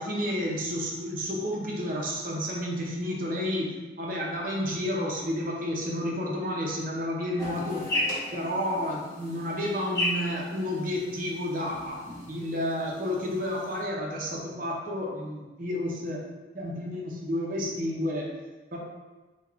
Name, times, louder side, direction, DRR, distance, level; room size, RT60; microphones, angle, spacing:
voice 1, 0.0-8.0 8.3-16.2 16.5-18.3 18.7-18.8, left 1 dB, 45° right, -2 dB, 0.6 m, -31 dB
sound 1, 7.4-13.8, left 1 dB, 15° left, 0.8 m, -35 dB
3.4 x 2.3 x 3.5 m, 1.2 s
head